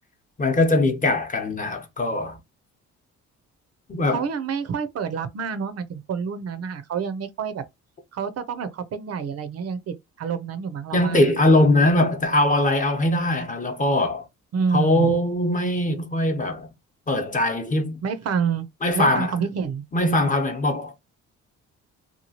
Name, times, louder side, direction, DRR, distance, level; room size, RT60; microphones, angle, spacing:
voice 1, 0.4-2.4 3.9-4.2 10.9-14.3 14.7-16.7 17.1-18.0 18.8-19.3 19.9-20.9, left 1 dB, 25° left, 0.8 m, -21 dB
voice 2, 4.1-7.6 8.1-11.3 14.5-15.1 18.0-18.7 18.9-19.8, right 6 dB, 55° right, 0.6 m, -28 dB
2.9 x 2.3 x 2.7 m
cardioid pair, 90°, 30 cm